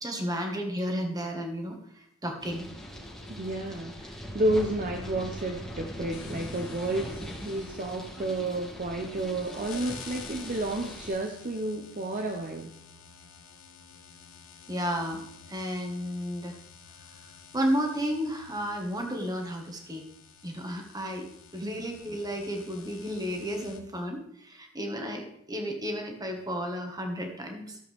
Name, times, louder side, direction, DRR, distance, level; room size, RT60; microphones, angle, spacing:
voice 1, 0.0-2.7 7.5-7.6 14.7-15.2 15.5-16.6 17.1-17.2 17.5-20.0 20.4-21.2 21.5-27.8, equal, 15° right, 3 dB, 1.6 m, -32 dB
sound 1, 2.4-11.1, equal, 5° left, 1.9 m, -41 dB
voice 2, 3.3-12.7 21.6-21.8, right 1 dB, 35° right, 3 dB, 0.7 m, -31 dB
sound 2, 6.1-23.8, left 6 dB, 65° left, 1.4 m, -50 dB
14.0 x 7.7 x 3.5 m, 0.75 s
head